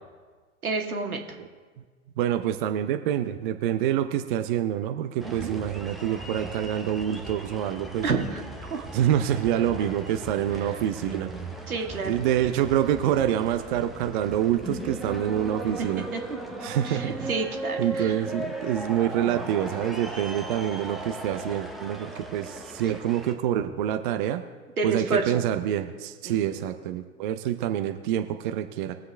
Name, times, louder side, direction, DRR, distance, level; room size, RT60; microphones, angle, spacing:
voice 1, 0.6-1.2 5.2-5.6 8.0-8.9 10.5-10.6 11.7-12.2 15.6-16.2 16.8-18.2 24.8-25.4 26.3-26.6, right 4 dB, 80° right, 3 dB, 1.9 m, -30 dB
voice 2, 2.2-8.1 8.9-11.3 12.0-16.1 16.6-17.3 17.8-24.4 24.8-28.9, right 11 dB, 35° right, 7 dB, 0.6 m, -26 dB
sound 1, 5.2-23.3, right 1 dB, ahead, 0.8 m, -37 dB
21.0 x 7.5 x 3.4 m, 1.4 s
figure-of-eight pair, 115°, 42 cm